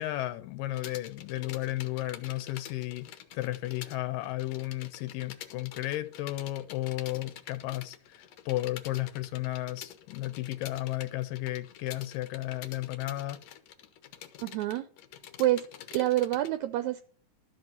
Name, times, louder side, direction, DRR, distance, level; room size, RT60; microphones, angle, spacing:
voice 1, 0.0-13.4, left 16 dB, 85° left, 2.4 m, -34 dB
sound 1, 0.7-4.0 4.2-16.5, left 10 dB, 65° left, 1.8 m, -47 dB
voice 2, 14.4-14.8 15.4-15.7 15.9-17.1, right 14 dB, 80° right, 1.7 m, -27 dB
12.5 x 5.5 x 7.2 m
omnidirectional pair, 3.9 m